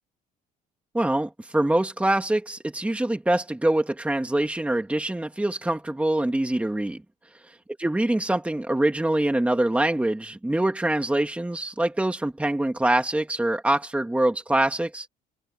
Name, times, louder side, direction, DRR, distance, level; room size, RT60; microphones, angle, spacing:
voice 1, 0.9-7.0 7.8-15.1, right 1 dB, 10° right, 2.3 m, -24 dB
open air
cardioid pair, 110°, 17 cm